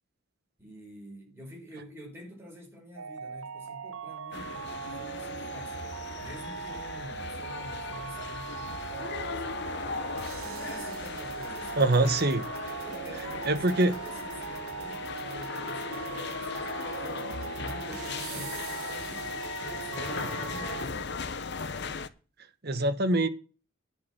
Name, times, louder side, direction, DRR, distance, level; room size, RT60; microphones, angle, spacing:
voice 1, 0.6-5.8 6.2-10.1 10.4-11.9 12.8-19.3 19.8-21.1, equal, 10° right, 5.0 m, -47 dB
sound 1, 3.0-20.9, right 6 dB, 90° right, 0.7 m, -40 dB
sound 2, 4.3-22.1, left 5 dB, 55° left, 0.9 m, -38 dB
sound 3, 7.5-20.5, left 8 dB, 75° left, 1.5 m, -47 dB
voice 2, 11.8-12.4 13.4-13.9 22.6-23.3, right 2 dB, 50° right, 1.2 m, -24 dB
10.5 x 6.4 x 7.6 m
head